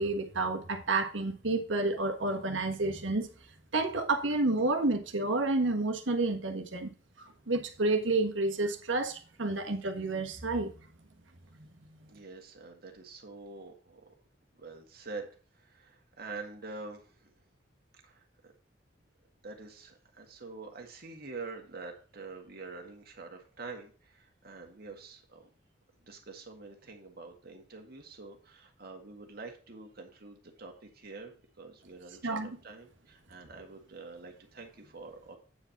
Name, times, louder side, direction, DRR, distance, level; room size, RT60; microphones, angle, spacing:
voice 1, 0.0-3.3 3.7-6.9 7.2-10.7 32.2-32.5, right 2 dB, 90° right, 5 dB, 1.4 m, -30 dB
voice 2, 12.1-14.0 14.6-17.3 18.0-18.5 19.4-25.5 26.1-35.4, right 3 dB, 55° right, 3 dB, 1.9 m, -46 dB
8.9 x 4.8 x 5.8 m, 0.37 s
head